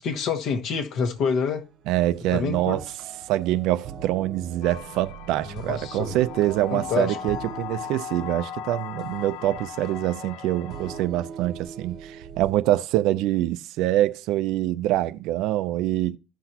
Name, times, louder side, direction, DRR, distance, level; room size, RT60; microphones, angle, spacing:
voice 1, 0.0-1.6 2.3-2.8 5.5-6.2 6.7-7.2, left 5 dB, 50° left, 1.2 m, -27 dB
sound 1, 1.2-12.5, right 7 dB, 45° right, 0.9 m, -42 dB
voice 2, 1.9-2.9 3.3-16.2, right 14 dB, 65° right, 0.5 m, -25 dB
sound 2, 4.6-11.0, left 9 dB, 85° left, 0.6 m, -38 dB
14.0 x 5.9 x 2.8 m
cardioid pair, 180°, 0 cm